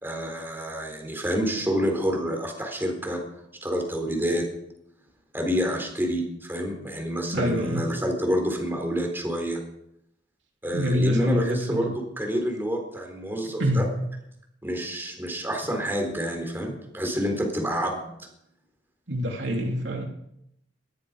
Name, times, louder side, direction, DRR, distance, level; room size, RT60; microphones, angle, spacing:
voice 1, 0.0-3.2 3.6-4.4 5.3-9.6 10.6-11.9 12.2-13.8 14.6-18.3, equal, 10° right, 2 dB, 4.1 m, -28 dB
voice 2, 7.3-7.9 10.7-11.9 13.6-13.9 19.1-20.1, equal, 75° right, 1 dB, 3.2 m, -25 dB
20.5 x 13.5 x 5.2 m, 0.77 s
head